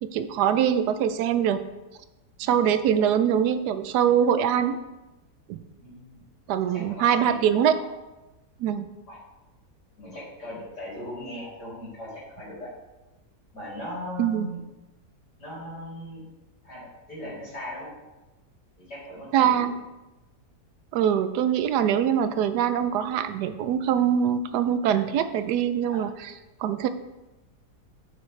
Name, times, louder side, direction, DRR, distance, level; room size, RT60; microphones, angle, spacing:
voice 1, 0.0-1.6 2.4-4.8 5.5-5.6 6.5-7.7 8.6-8.9 14.2-14.5 19.3-19.7 20.9-26.1 26.6-26.9, right 9 dB, 80° right, 11 dB, 1.1 m, -23 dB
voice 2, 5.8-6.3 6.5-7.9 9.1-9.2 10.0-12.7 13.5-14.6 15.4-16.2 16.6-17.9 18.8-19.7 20.9-21.1 21.6-21.7 25.9-26.0, left 1 dB, 85° left, -7 dB, 3.8 m, -39 dB
9.4 x 6.3 x 3.3 m, 1.0 s
omnidirectional pair, 1.7 m